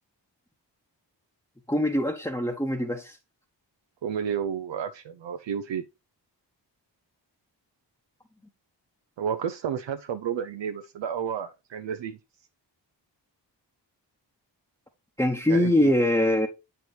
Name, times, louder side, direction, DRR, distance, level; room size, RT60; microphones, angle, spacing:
voice 1, 1.7-3.2 15.2-16.5, left 1 dB, 10° left, 0.9 m, -23 dB
voice 2, 4.0-5.8 9.2-12.2 15.5-15.7, right 8 dB, 80° right, 0.6 m, -31 dB
7.9 x 4.4 x 3.2 m
wide cardioid pair, 75°, 44 cm